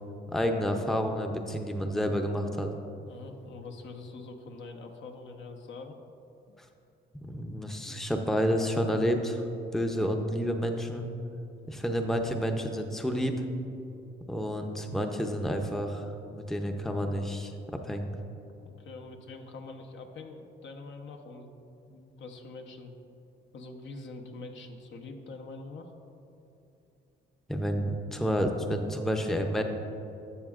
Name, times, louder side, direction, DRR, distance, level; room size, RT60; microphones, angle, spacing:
voice 1, 0.3-2.7 7.2-9.4 9.7-11.0 11.7-13.4 14.3-17.5 17.8-18.1 27.5-29.6, equal, ahead, 4 dB, 0.6 m, -29 dB
voice 2, 3.1-6.0 6.5-6.6 7.9-8.1 11.7-12.0 18.5-21.6 21.9-22.9 23.5-25.9, left 3 dB, 70° left, 3 dB, 0.9 m, -45 dB
12.5 x 7.0 x 2.4 m, 2.9 s
cardioid pair, 90°, 20 cm